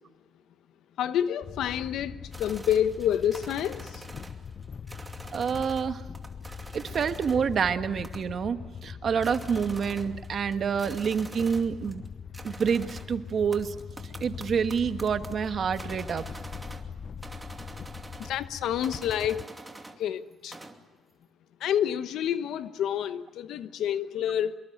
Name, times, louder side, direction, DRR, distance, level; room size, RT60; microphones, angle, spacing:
voice 1, 1.0-2.1 2.4-4.0 18.2-19.4 20.0-20.6 21.6-24.5, left 10 dB, 80° left, 12 dB, 1.1 m, -28 dB
sound 1, 1.4-19.4, left 6 dB, 45° left, 0.8 m, -42 dB
sound 2, 2.3-5.9 6.1-7.5 8.0-8.5 8.8-8.9 9.1-12.1 12.3-16.9 17.2-18.4 18.8-20.0 20.3-20.8, right 2 dB, 15° right, 2.6 m, -46 dB
voice 2, 5.3-6.0 6.7-12.1 12.4-13.7 14.2-16.3, right 6 dB, 55° right, 9 dB, 1.4 m, -28 dB
25.5 x 22.5 x 7.8 m, 1.3 s
cardioid pair, 90°, 0 cm